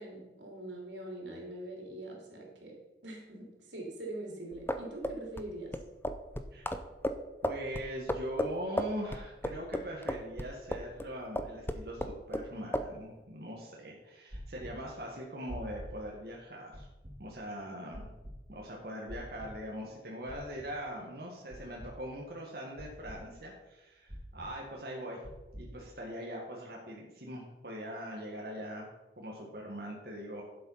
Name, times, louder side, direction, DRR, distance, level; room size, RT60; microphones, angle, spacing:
voice 1, 0.0-2.7 3.0-5.7, right 1 dB, 90° right, -1 dB, 3.5 m, -43 dB
sound 1, 4.5-11.1 11.4-12.5 12.7-12.9, equal, 15° left, 0.6 m, -34 dB
voice 2, 7.4-16.8 17.2-18.1 18.5-25.2 25.5-28.9 29.2-30.4, equal, 60° right, -2 dB, 1.7 m, -41 dB
sound 2, 14.3-14.7 15.5-15.9 16.7-17.1 17.9-18.3 19.1-19.5 20.3-20.7 21.5-21.9 22.8-23.2 24.1-24.5 25.2-25.7, equal, 40° right, 2.0 m, -44 dB
11.5 x 7.6 x 5.6 m, 1.1 s
head